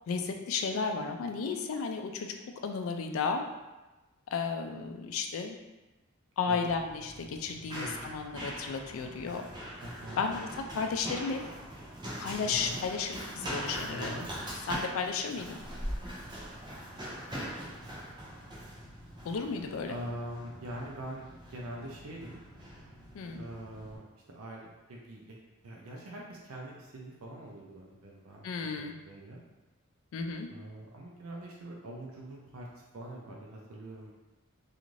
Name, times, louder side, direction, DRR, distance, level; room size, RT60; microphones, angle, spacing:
voice 1, 0.1-2.3 2.6-3.4 4.3-5.6 6.4-9.5 10.2-11.4 12.2-14.1 14.7-15.6 19.2-20.0 23.1-23.4 28.4-29.0 30.1-30.5, left 5 dB, 75° left, 4 dB, 0.3 m, -33 dB
Run, 6.7-24.0, equal, 20° right, 0.6 m, -42 dB
voice 2, 9.8-10.3 12.4-12.8 13.9-14.3 19.9-22.4 23.3-28.5 28.8-29.4 30.5-34.1, right 1 dB, 85° right, -2 dB, 0.5 m, -43 dB
2.5 x 2.4 x 3.1 m, 1.1 s
head